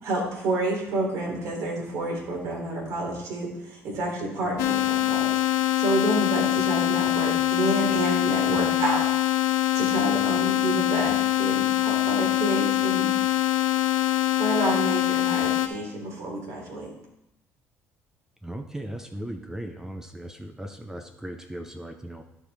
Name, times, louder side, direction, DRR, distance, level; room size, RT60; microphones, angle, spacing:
voice 1, 0.0-9.0 9.7-13.1 14.4-16.9, right 2 dB, 65° right, -1 dB, 3.0 m, -29 dB
sound 1, 4.6-15.7, left 14 dB, 80° left, 0.7 m, -24 dB
voice 2, 18.4-22.2, right 1 dB, 10° right, 6 dB, 0.7 m, -37 dB
12.5 x 4.8 x 3.4 m, 0.85 s
supercardioid pair, 90°, 5 cm